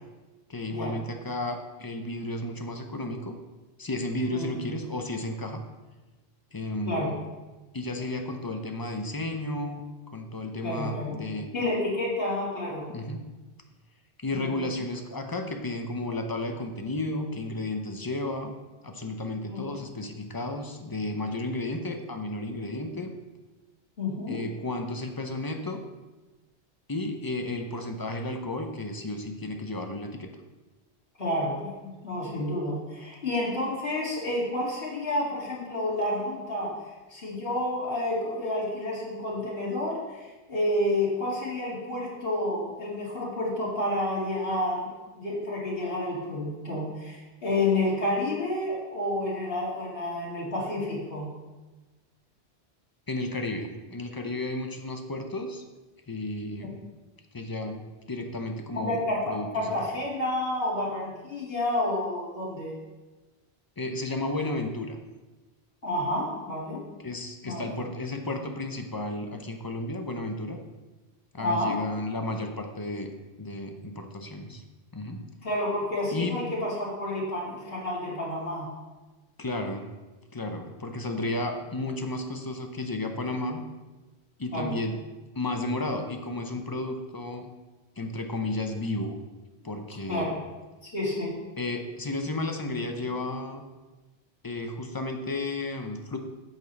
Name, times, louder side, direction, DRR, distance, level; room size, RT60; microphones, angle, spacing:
voice 1, 0.5-3.4 3.8-5.6 6.5-7.2 7.7-9.8 10.1-11.5 12.9-13.3 14.2-23.1 24.3-25.8 26.9-30.3 53.1-55.6 56.1-56.8 57.3-57.8 58.1-59.0 59.3-59.7 63.8-65.0 67.0-70.6 71.3-73.1 73.4-74.6 74.9-75.3 76.1-76.4 79.4-79.9 80.3-83.6 84.4-85.0 85.4-87.5 88.0-89.2 89.6-90.4 91.6-93.6 94.4-96.2, left 2 dB, 25° left, 4 dB, 0.6 m, -33 dB
voice 2, 10.6-11.1 11.5-12.9 14.3-14.6 19.5-19.6 24.0-24.4 31.2-36.7 37.1-51.3 58.7-62.8 65.8-66.8 67.4-67.6 71.4-71.7 75.4-78.7 84.5-84.7 90.1-90.3 90.8-91.4, left 1 dB, 65° left, -6 dB, 2.6 m, -30 dB
7.9 x 7.0 x 4.1 m, 1.2 s
omnidirectional pair, 1.1 m